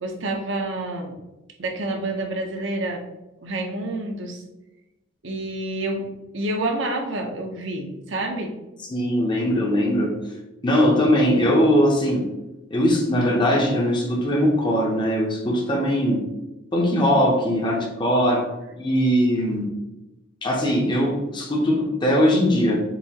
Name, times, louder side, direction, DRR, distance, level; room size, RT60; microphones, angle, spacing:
voice 1, 0.0-1.1 1.6-3.0 3.4-4.4 5.2-6.0 6.3-8.5, right 2 dB, 70° right, 2 dB, 0.8 m, -28 dB
voice 2, 8.9-10.1 10.6-12.3 12.7-16.2 16.7-18.5 18.8-19.7 20.4-22.8, equal, 25° left, 1 dB, 0.7 m, -20 dB
7.0 x 2.7 x 2.8 m, 1.0 s
head